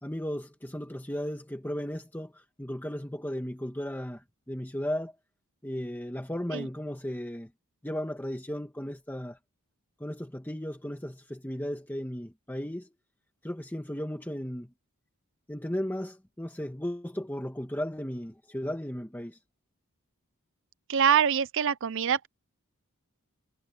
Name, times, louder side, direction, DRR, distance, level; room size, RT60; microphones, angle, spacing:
voice 1, 0.0-5.1 5.6-7.5 7.8-9.4 10.0-12.9 13.4-14.7 15.5-19.4, equal, 10° left, 1.6 m, -35 dB
voice 2, 20.9-22.3, right 8 dB, 60° right, 0.6 m, -24 dB
head